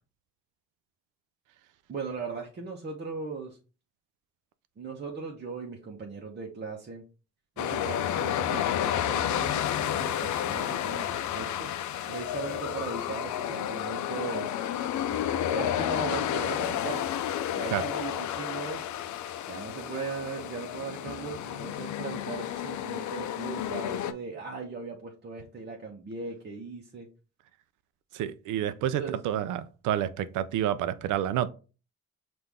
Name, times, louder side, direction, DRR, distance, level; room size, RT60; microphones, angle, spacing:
voice 1, 1.9-3.6 4.8-7.0 7.6-11.7 12.1-14.5 15.1-17.0 17.5-18.9 19.5-27.1 29.0-29.2, right 4 dB, 35° right, 0.8 m, -38 dB
sound 1, 7.6-24.1, left 10 dB, 70° left, 0.5 m, -31 dB
voice 2, 28.1-31.5, right 11 dB, 85° right, 0.5 m, -29 dB
5.7 x 2.6 x 3.4 m
cardioid pair, 90°, 30 cm